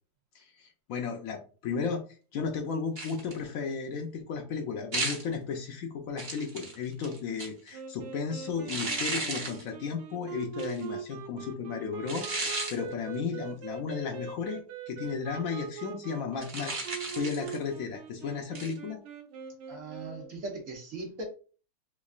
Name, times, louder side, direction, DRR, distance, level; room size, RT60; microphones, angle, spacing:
voice 1, 0.3-14.6 14.9-16.7 17.2-19.0, left 5 dB, 75° left, 3 dB, 0.7 m, -34 dB
sound 1, 3.0-3.4 4.9-5.3 6.2-7.7 8.7-9.6 10.6-10.8 12.1-12.8 16.4-17.7 18.5-18.8, right 2 dB, 40° right, 0.7 m, -34 dB
sound 2, 7.7-20.3, right 8 dB, 75° right, 1.3 m, -42 dB
voice 2, 19.7-21.2, right 3 dB, 55° right, 1 dB, 1.0 m, -39 dB
3.5 x 3.1 x 2.4 m, 0.38 s
omnidirectional pair, 2.0 m